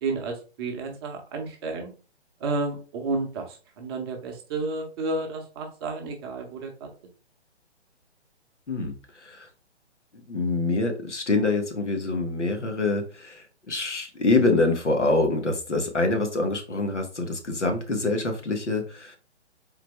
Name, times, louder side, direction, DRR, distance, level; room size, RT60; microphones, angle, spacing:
voice 1, 0.0-1.9 2.4-6.9, right 3 dB, 20° right, 2 dB, 0.7 m, -31 dB
voice 2, 8.7-9.5 10.3-19.2, left 3 dB, 90° left, 3 dB, 1.3 m, -25 dB
4.0 x 3.2 x 3.3 m, 0.36 s
figure-of-eight pair, 135°, 34 cm